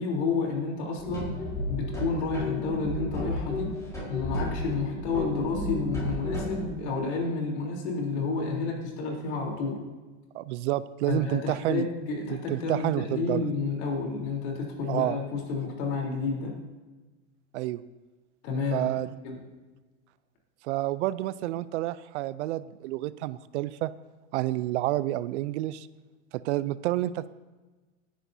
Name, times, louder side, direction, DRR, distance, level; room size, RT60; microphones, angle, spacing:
voice 1, 0.0-1.3 1.7-3.7 4.1-9.8 11.1-16.5 18.4-18.9 19.2-19.4, left 4 dB, 70° left, 0 dB, 3.8 m, -30 dB
sound 1, 1.0-6.6, left 1 dB, 10° left, 4.4 m, -33 dB
voice 2, 10.3-11.9 12.5-13.5 14.9-15.2 17.5-17.8 18.7-19.1 20.6-23.9 24.3-25.9 26.3-27.3, right 15 dB, 75° right, 17 dB, 0.6 m, -29 dB
18.5 x 10.0 x 2.8 m, 1.2 s
supercardioid pair, 130°, 35 cm